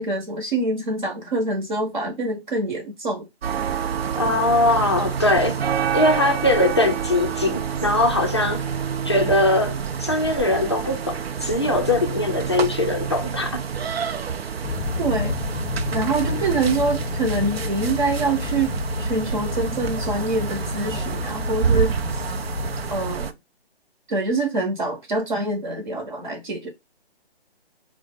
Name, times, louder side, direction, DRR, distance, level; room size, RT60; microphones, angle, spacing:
voice 1, 0.0-3.3 3.7-3.8 15.0-15.4 15.9-18.7 19.0-21.9 22.9-23.3 24.1-26.7, right 2 dB, 45° right, 0.9 m, -25 dB
sound 1, 3.4-23.3, right 7 dB, 70° right, 0.5 m, -28 dB
voice 2, 4.2-5.6 5.9-8.6 9.0-13.6, left 2 dB, 25° left, 0.4 m, -21 dB
sound 2, 14.6-23.1, left 4 dB, 85° left, 0.5 m, -30 dB
3.9 x 2.0 x 3.5 m
figure-of-eight pair, 155°, 32 cm